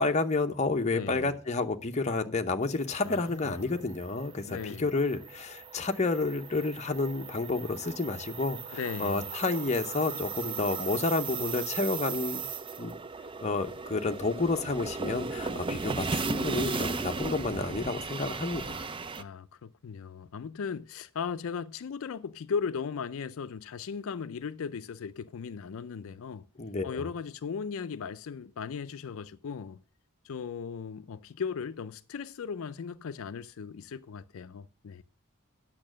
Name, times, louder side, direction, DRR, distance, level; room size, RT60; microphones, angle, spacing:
voice 1, 0.0-12.4 12.8-13.0 13.4-18.9 26.6-27.0, left 3 dB, 30° left, 0.7 m, -30 dB
voice 2, 0.9-1.3 3.0-3.8 4.5-4.9 8.7-9.2 19.2-26.4 26.8-29.8 30.2-35.0, left 6 dB, 70° left, 0.4 m, -37 dB
sound 1, 2.8-19.2, right 4 dB, 25° right, 0.4 m, -37 dB
8.6 x 6.5 x 6.2 m
head